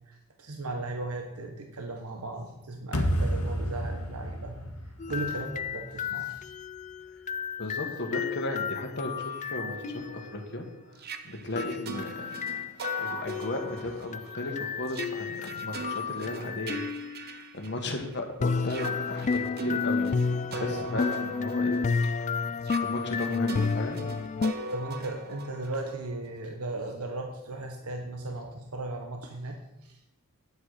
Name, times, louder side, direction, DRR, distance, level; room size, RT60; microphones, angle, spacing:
voice 1, 0.1-4.7 5.1-6.5 24.7-30.0, right 2 dB, 75° right, 3 dB, 1.2 m, -37 dB
sound 1, 2.9-6.0, equal, 75° left, 1.5 m, -31 dB
sound 2, 5.0-10.3 11.6-17.3 18.4-24.5, left 5 dB, 35° left, 0.3 m, -31 dB
voice 2, 7.6-10.7 11.2-12.6 13.0-16.9 17.5-21.8 22.4-24.1, left 2 dB, 50° left, 4 dB, 1.6 m, -35 dB
sound 3, 9.3-18.1 18.6-26.4, right 4 dB, 45° right, 0.7 m, -42 dB
10.0 x 8.2 x 5.0 m, 0.89 s
head